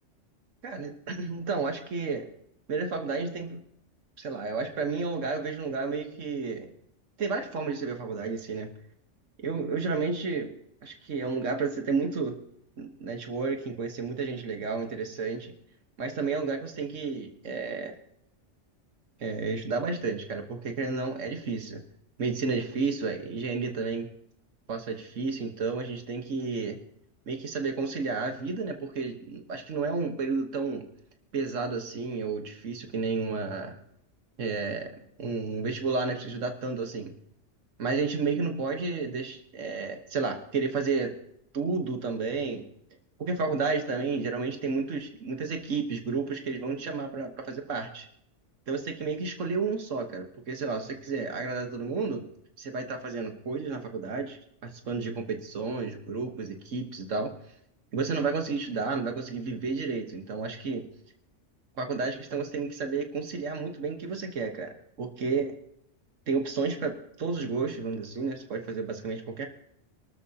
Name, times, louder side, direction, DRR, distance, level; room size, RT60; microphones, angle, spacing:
voice 1, 0.6-2.3 2.7-3.6 4.2-6.7 7.2-8.7 9.4-10.5 10.8-12.4 12.8-15.5 16.0-17.9 19.2-21.8 22.2-24.1 24.7-26.8 27.3-30.9 31.3-33.7 34.4-34.9 35.2-37.1 37.8-41.1 41.5-42.6 43.2-48.1 48.7-52.2 52.6-57.3 57.9-60.8 61.8-65.5 66.3-69.5, right 4 dB, 90° right, 5 dB, 1.6 m, -31 dB
23.0 x 13.0 x 2.8 m, 0.74 s
omnidirectional pair, 1.3 m